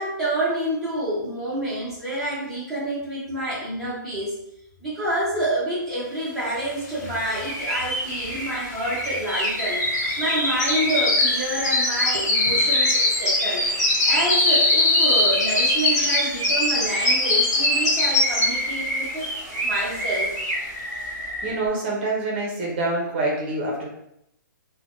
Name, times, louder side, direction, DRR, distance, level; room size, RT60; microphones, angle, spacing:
voice 1, 0.0-4.4 4.8-13.6 14.0-19.2 19.6-20.3, right 1 dB, ahead, -11 dB, 0.7 m, -28 dB
sound 1, 7.1-7.2 7.3-18.8 19.2-19.5 19.9-20.0, left 2 dB, 50° left, 1.0 m, -22 dB
sound 2, 7.3-21.6, right 1 dB, 25° left, 1.3 m, -29 dB
voice 2, 12.1-12.6 21.0-23.9, right 2 dB, 35° right, -2 dB, 0.7 m, -27 dB
3.3 x 2.1 x 2.5 m, 0.78 s
hypercardioid pair, 165°, 11 cm